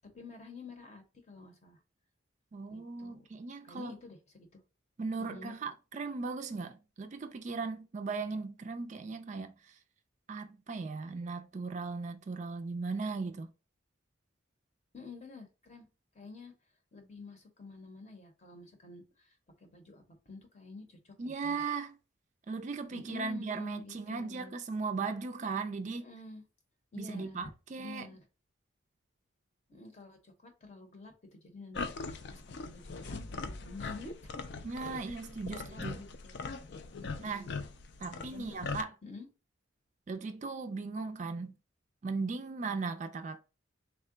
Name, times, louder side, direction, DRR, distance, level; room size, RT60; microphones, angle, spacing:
voice 1, 0.1-1.8 2.7-3.2 3.6-4.6 5.2-5.5 14.9-15.9 16.1-16.5 16.9-21.6 22.9-24.5 26.0-26.4 26.9-27.4 27.8-28.2 29.7-34.4 34.9-35.2 35.5-36.4 37.0-37.7 38.1-38.7 39.0-39.3, left 3 dB, 35° left, 0.8 m, -49 dB
voice 2, 2.5-3.9 5.0-9.8 10.3-13.5 21.2-22.0 22.5-26.0 27.0-28.1 34.6-36.0 37.2-37.5 38.0-38.9 40.1-41.5 42.0-43.4, right 4 dB, 40° right, 0.3 m, -37 dB
sound 1, 31.7-38.8, left 4 dB, 60° left, 0.4 m, -41 dB
3.5 x 2.2 x 3.7 m
head